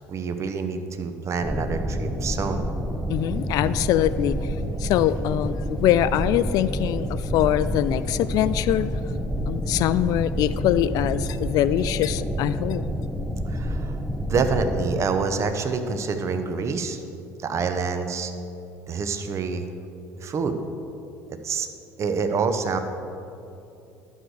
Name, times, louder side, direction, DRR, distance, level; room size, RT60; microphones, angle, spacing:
voice 1, 0.1-2.7 13.5-14.0 14.3-17.0 17.4-18.3 18.9-19.7 20.2-20.6 21.3-21.7 22.0-22.8, right 5 dB, 40° right, 8 dB, 0.8 m, -27 dB
sound 1, 1.4-14.9, equal, 5° right, 0.6 m, -28 dB
voice 2, 3.1-8.9 9.5-12.8, left 12 dB, 55° left, 15 dB, 0.4 m, -23 dB
11.0 x 6.5 x 4.7 m, 2.7 s
hypercardioid pair, 65°, 8 cm